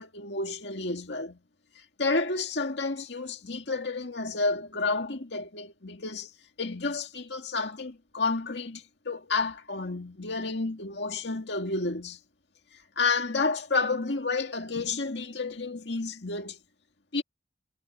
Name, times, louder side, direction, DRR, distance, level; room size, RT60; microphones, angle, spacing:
voice 1, 0.0-1.4 1.8-6.3 6.6-12.2 12.7-16.6 17.1-17.2, left 3 dB, 70° left, 2.2 m, -30 dB
head